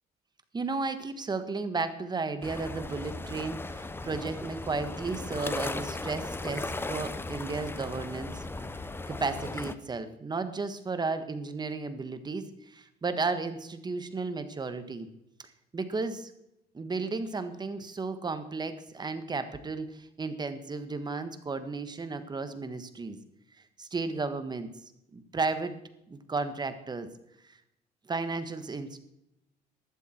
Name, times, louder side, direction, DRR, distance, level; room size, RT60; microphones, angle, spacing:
voice 1, 0.5-8.4 9.1-15.1 15.7-16.3 16.7-23.2 23.8-24.7 25.1-25.7 26.1-27.1 28.1-29.0, right 3 dB, 25° right, 10 dB, 1.5 m, -34 dB
sound 1, 2.4-9.8, left 2 dB, 15° left, 0.8 m, -37 dB
14.5 x 12.5 x 4.5 m, 0.83 s
cardioid pair, 110°, 17 cm